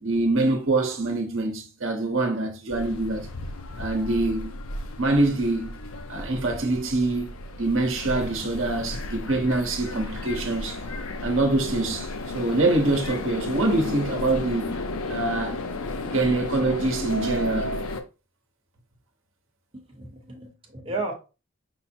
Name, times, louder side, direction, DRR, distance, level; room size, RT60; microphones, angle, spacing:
voice 1, 0.0-3.3 3.8-4.5 5.0-5.8 6.1-10.8 11.2-14.7 15.1-15.6 16.0-17.7, right 2 dB, 60° right, 0.9 m, -25 dB
sound 1, 2.7-18.0, left 2 dB, 70° left, 0.6 m, -33 dB
voice 2, 19.7-21.1, right 3 dB, 25° right, 0.9 m, -33 dB
5.3 x 2.0 x 4.3 m
head